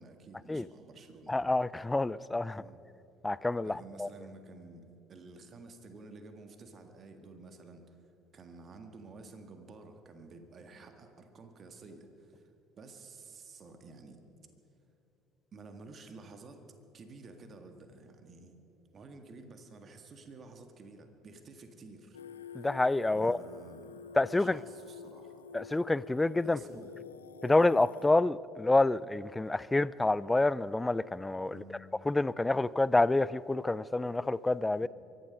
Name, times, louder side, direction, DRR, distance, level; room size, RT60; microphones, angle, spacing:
voice 1, 0.0-1.4 2.5-2.8 3.6-8.0 8.3-12.4 12.8-14.2 15.5-16.6 16.9-18.6 18.9-22.2 23.1-24.0 24.3-25.5 26.4-27.0 31.5-31.8 34.8-34.9, right 3 dB, 40° right, 1.7 m, -51 dB
voice 2, 1.3-2.6 3.2-4.1 22.5-23.4 24.2-24.6 25.5-26.6 27.4-31.6 32.1-34.9, left 2 dB, 15° left, 0.4 m, -28 dB
Singing, 22.1-28.1, left 6 dB, 80° left, 0.4 m, -49 dB
23.5 x 11.0 x 5.3 m
figure-of-eight pair, 55°, 0 cm